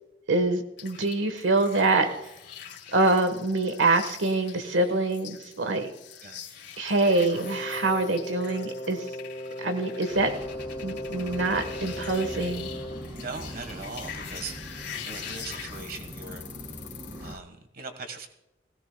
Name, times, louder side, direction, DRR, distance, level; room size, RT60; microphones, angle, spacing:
voice 1, 0.3-2.1 2.9-5.9 6.8-9.1 9.6-10.3 10.8-12.7, right 2 dB, 85° right, 7 dB, 1.3 m, -25 dB
sound 1, 0.8-17.4, left 8 dB, 60° left, 2.2 m, -44 dB
Wind instrument woodwind instrument, 7.4-13.1, equal, 30° left, 1.4 m, -37 dB
sound 2, 10.1-17.4, equal, 20° right, 2.1 m, -41 dB
voice 2, 13.2-16.4 17.2-18.3, right 4 dB, 50° right, 7 dB, 1.4 m, -40 dB
19.0 x 17.0 x 2.2 m, 0.91 s
head